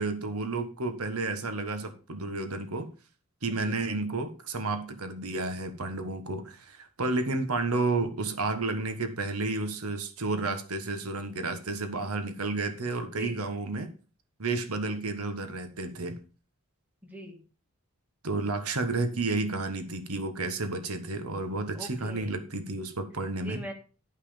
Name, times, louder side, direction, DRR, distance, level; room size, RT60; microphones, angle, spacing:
voice 1, 0.0-2.9 3.4-13.9 14.4-16.2 18.2-23.6, right 3 dB, 85° right, 8 dB, 1.5 m, -31 dB
voice 2, 3.5-3.8 13.1-13.4 17.0-17.4 21.7-22.3 23.4-23.7, equal, 5° right, 2 dB, 1.9 m, -41 dB
11.0 x 5.7 x 5.1 m, 0.35 s
head